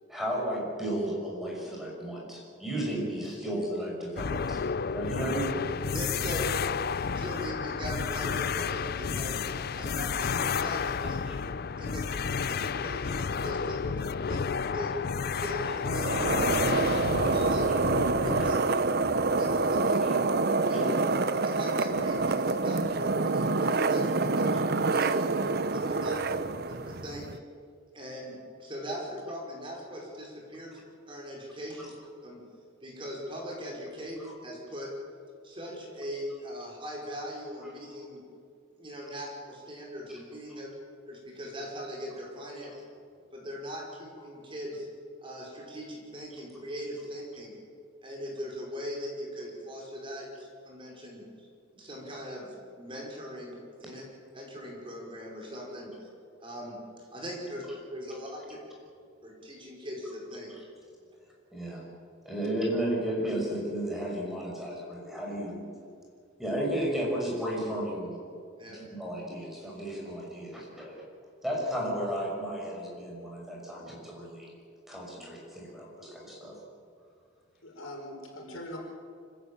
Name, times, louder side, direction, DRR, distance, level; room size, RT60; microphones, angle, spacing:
voice 1, 0.1-4.6 4.9-5.6 11.3-11.4 20.7-20.9 61.5-61.8 62.2-65.7 66.4-68.2 68.6-71.0 71.4-74.5 74.9-76.6, right 1 dB, ahead, -3 dB, 6.0 m, -33 dB
sound 1, 4.2-18.6, left 6 dB, 50° left, 0.5 m, -31 dB
voice 2, 5.9-6.5 7.0-9.4 9.8-11.4 11.8-12.0 12.4-13.9 14.3-14.4 14.7-14.9 15.3-16.2 16.7-17.0 17.3-17.7 18.1-18.7 19.4-20.1 20.7-20.8 21.4-24.6 24.9-26.4 26.7-27.3 27.9-31.9 32.2-32.4 32.8-34.2 34.4-34.9 35.4-38.2 38.8-40.7 41.1-42.7 43.3-44.9 45.2-47.5 48.0-51.2 51.7-54.0 54.3-56.1 56.4-57.6 57.9-58.6 59.2-60.5 68.5-68.8, equal, 25° right, -2 dB, 5.3 m, -40 dB
sound 2, 15.8-27.4, right 3 dB, 50° right, 0.8 m, -27 dB
voice 3, 77.6-78.8, left 1 dB, 80° left, 0 dB, 5.1 m, -42 dB
25.5 x 15.5 x 8.7 m, 2.3 s
head